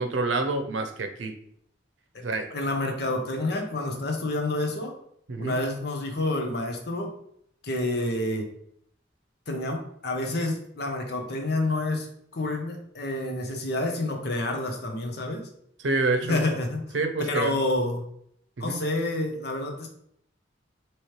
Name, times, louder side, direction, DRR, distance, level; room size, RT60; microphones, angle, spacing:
voice 1, 0.0-1.3 2.2-2.5 5.3-5.6 15.8-16.4 16.9-17.6 18.6-18.8, right 3 dB, 85° right, 6 dB, 0.6 m, -27 dB
voice 2, 2.1-4.9 5.4-7.1 7.6-8.5 9.5-12.1 12.3-15.4 16.2-16.9 17.3-18.0 18.6-19.9, left 2 dB, 60° left, 3 dB, 0.8 m, -29 dB
3.2 x 3.1 x 4.3 m, 0.69 s
head